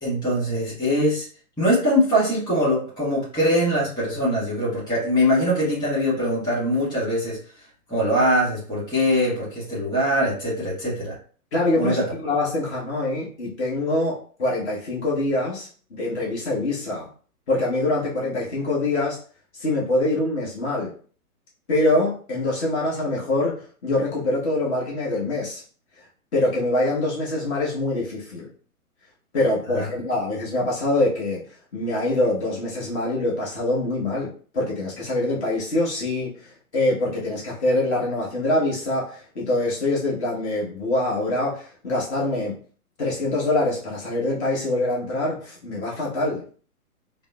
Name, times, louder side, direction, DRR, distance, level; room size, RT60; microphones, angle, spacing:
voice 1, 0.0-1.3 1.6-7.4 7.9-11.1 11.8-12.1 29.7-29.9, equal, 10° left, -9 dB, 1.4 m, -22 dB
voice 2, 11.5-17.1 17.5-19.2 19.5-20.9 21.7-25.6 26.0-26.1 26.3-28.5 29.3-31.4 31.7-42.6 43.0-46.4, left 2 dB, 50° left, -5 dB, 1.1 m, -24 dB
3.5 x 2.0 x 2.3 m, 0.43 s
hypercardioid pair, 135°, 45 cm